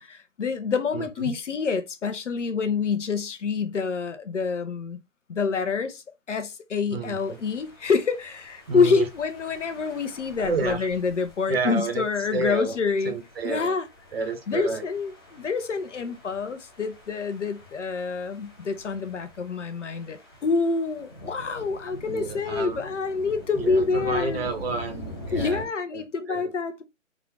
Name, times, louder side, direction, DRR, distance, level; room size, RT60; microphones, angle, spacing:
voice 1, 0.0-5.0 5.3-13.2 13.4-13.9 14.5-24.4 25.3-26.8, left 5 dB, 65° left, 0.8 m, -27 dB
voice 2, 0.9-1.3 6.9-7.4 8.7-9.1 10.4-10.9 11.5-12.0 12.3-12.7 13.0-13.7 14.1-14.8 22.0-22.8 23.6-25.7 25.9-26.5, right 4 dB, 50° right, 1.0 m, -30 dB
sound 1, 7.0-25.7, left 1 dB, 20° left, 0.6 m, -44 dB
3.7 x 2.4 x 3.3 m
figure-of-eight pair, 145°, 40 cm